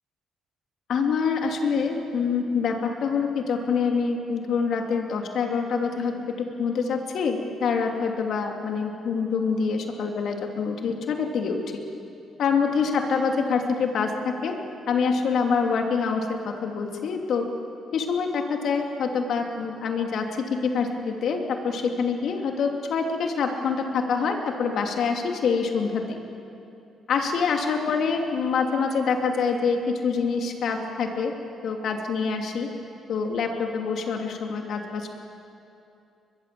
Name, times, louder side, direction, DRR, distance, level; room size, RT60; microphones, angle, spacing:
voice 1, 0.9-11.6 12.4-14.6 14.9-17.4 17.9-26.2 27.1-31.3 31.6-32.7 33.1-35.1, left 5 dB, 70° left, 3 dB, 2.9 m, -26 dB
23.0 x 22.0 x 7.7 m, 2.7 s
cardioid pair, 90°, 0 cm